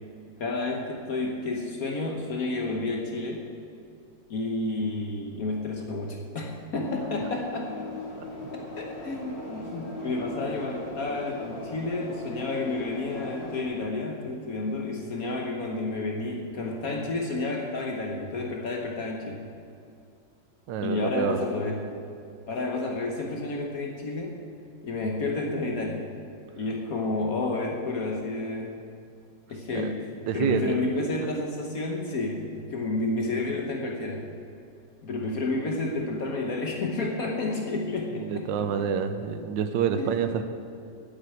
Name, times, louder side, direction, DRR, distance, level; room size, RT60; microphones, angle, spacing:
voice 1, 0.4-3.5 4.3-7.9 8.5-19.4 20.8-21.9 22.5-24.4 24.8-26.1 26.5-28.8 29.5-30.1 30.3-34.2 35.0-38.9 39.9-40.2, left 2 dB, 55° left, 1 dB, 1.4 m, -30 dB
sound 1, 6.8-13.6, left 2 dB, 85° left, 3.0 m, -39 dB
voice 2, 20.7-21.4 29.7-29.9 30.3-30.8 38.1-40.4, right 7 dB, 85° right, 8 dB, 1.4 m, -27 dB
8.9 x 8.1 x 9.3 m, 2.5 s
omnidirectional pair, 2.0 m